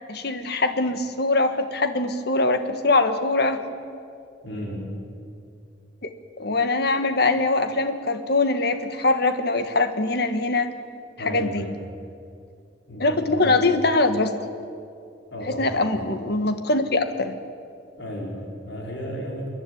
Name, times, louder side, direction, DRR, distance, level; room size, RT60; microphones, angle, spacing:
voice 1, 0.1-3.6 6.4-10.7 11.3-11.7 13.0-14.3 15.4-17.4, left 3 dB, 65° left, 8 dB, 1.5 m, -22 dB
voice 2, 4.4-5.0 11.2-11.7 12.9-13.6 15.3-15.8 18.0-19.5, equal, 80° left, -1 dB, 4.5 m, -33 dB
27.5 x 11.0 x 9.4 m, 2.4 s
head